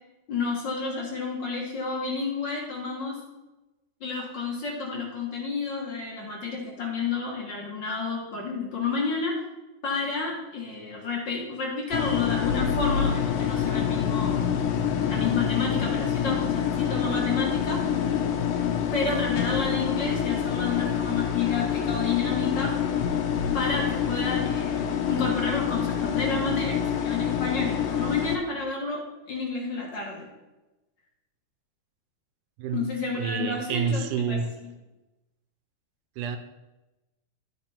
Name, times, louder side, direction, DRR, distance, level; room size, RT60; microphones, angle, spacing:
voice 1, 0.3-3.2 4.0-9.4 9.8-14.4 15.1-17.8 18.9-22.8 23.5-30.3 32.7-34.4, left 4 dB, 50° left, -2 dB, 1.5 m, -30 dB
sound 1, 11.9-28.4, left 8 dB, 90° left, 2.5 m, -26 dB
voice 2, 32.6-32.9 33.2-34.5 36.2-36.4, right 6 dB, 80° right, 7 dB, 2.0 m, -28 dB
13.0 x 4.3 x 4.3 m, 1.0 s
omnidirectional pair, 3.9 m